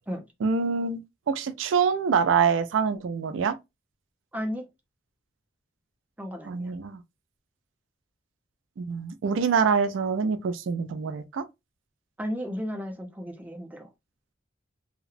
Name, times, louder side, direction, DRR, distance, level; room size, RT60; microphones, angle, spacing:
voice 1, 0.4-1.0 1.3-3.6 6.4-7.0 8.8-11.4, right 6 dB, 85° right, 0.4 m, -25 dB
voice 2, 4.3-4.6 6.2-6.7 12.2-13.9, equal, 10° right, 0.5 m, -34 dB
2.8 x 2.0 x 2.4 m
head